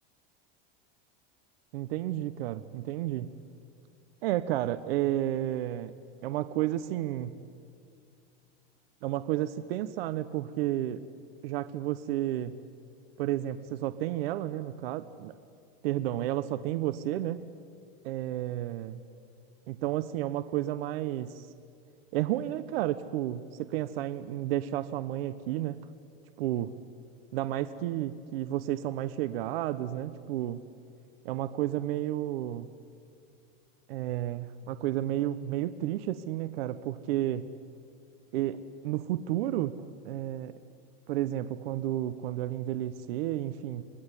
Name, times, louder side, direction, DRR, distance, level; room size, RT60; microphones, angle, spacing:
voice 1, 1.7-3.3 4.2-5.9 6.2-7.4 9.0-11.0 11.4-12.6 13.2-15.3 15.8-17.4 18.0-19.0 19.7-21.5 22.1-25.8 26.4-26.7 27.3-30.6 31.2-32.7 33.9-37.5 38.3-40.5 41.1-43.8, right 13 dB, 75° right, 12 dB, 1.0 m, -31 dB
25.5 x 19.5 x 9.8 m, 2.3 s
supercardioid pair, 170°, 31 cm